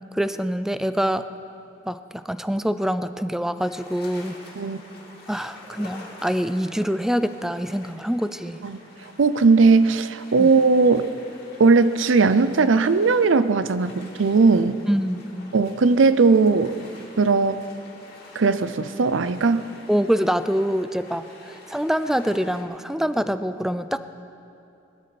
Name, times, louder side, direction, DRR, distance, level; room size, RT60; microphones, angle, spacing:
voice 1, 0.1-1.2 1.9-4.4 5.3-8.6 10.4-10.5 14.9-15.5 19.9-24.0, equal, ahead, 12 dB, 0.4 m, -25 dB
sound 1, 3.6-22.6, left 2 dB, 55° left, 2.8 m, -47 dB
voice 2, 9.2-11.1 11.6-14.8 15.5-16.8 17.2-17.6 18.4-19.6, right 4 dB, 80° right, 13 dB, 0.5 m, -18 dB
20.5 x 13.0 x 4.1 m, 2.7 s
head